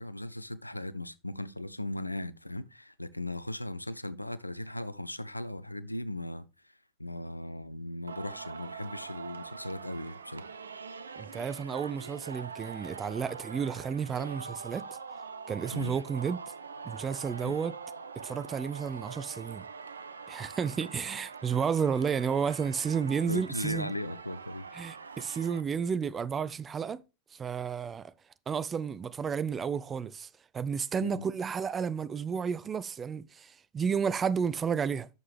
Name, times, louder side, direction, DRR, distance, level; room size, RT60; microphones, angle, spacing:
voice 1, 0.0-6.7 7.0-10.4 15.7-16.0 17.4-17.6 23.3-24.7 31.0-31.3, left 1 dB, 85° left, 0.5 m, -38 dB
Singing, 8.1-25.6, right 5 dB, 75° right, 0.6 m, -44 dB
voice 2, 11.2-14.8 15.5-16.4 16.8-17.7 18.2-19.6 20.3-23.9 24.7-27.0 27.3-28.0 28.5-30.3 30.5-35.1, right 6 dB, 20° right, 0.5 m, -32 dB
8.9 x 6.7 x 3.4 m
figure-of-eight pair, 90°, 0 cm